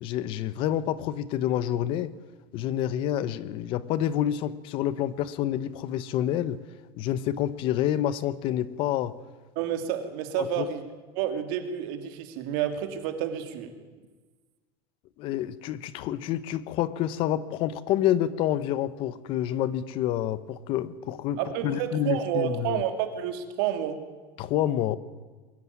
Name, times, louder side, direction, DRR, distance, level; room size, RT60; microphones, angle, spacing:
voice 1, 0.0-2.1 2.5-6.6 7.0-9.2 10.4-10.7 15.2-22.8 24.4-25.0, left 11 dB, 45° left, 1.0 m, -28 dB
voice 2, 9.6-10.8 11.1-13.7 21.4-24.0, right 10 dB, 60° right, 2.6 m, -30 dB
22.0 x 13.5 x 9.6 m
supercardioid pair, 155°, 13 cm